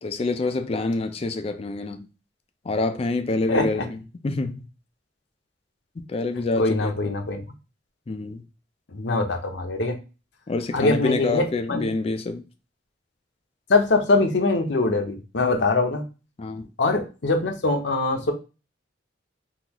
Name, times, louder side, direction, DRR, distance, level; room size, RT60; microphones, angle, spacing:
voice 1, 0.0-2.1 2.6-4.6 6.1-6.9 8.1-8.4 10.5-12.4 16.4-16.7, left 3 dB, 30° left, 0.3 m, -27 dB
voice 2, 6.6-7.4 8.9-10.0 10.7-11.9 13.7-16.0 16.8-18.3, left 3 dB, 65° left, 0.7 m, -23 dB
3.7 x 2.4 x 2.9 m
head